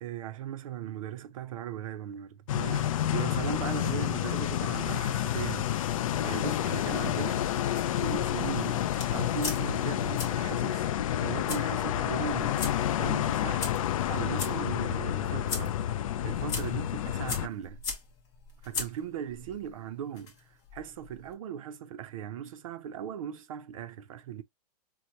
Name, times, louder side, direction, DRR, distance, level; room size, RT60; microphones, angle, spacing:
voice 1, 0.0-5.7 6.2-7.5 7.9-10.9 11.2-12.6 13.0-13.8 14.1-15.8 16.2-17.8 18.6-24.4, right 9 dB, 55° right, 0.5 m, -38 dB
sound 1, 2.5-17.5, left 11 dB, 55° left, 0.4 m, -29 dB
sound 2, 7.7-21.3, left 4 dB, 20° left, 0.7 m, -41 dB
4.4 x 2.1 x 2.5 m
hypercardioid pair, 165°, 20 cm